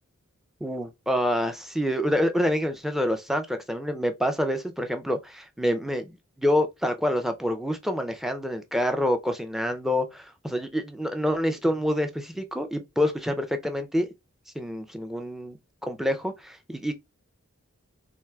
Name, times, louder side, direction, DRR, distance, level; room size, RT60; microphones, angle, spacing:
voice 1, 0.6-14.1 14.6-15.6 15.8-16.9, equal, ahead, 0.4 m, -27 dB
4.5 x 2.7 x 2.2 m
head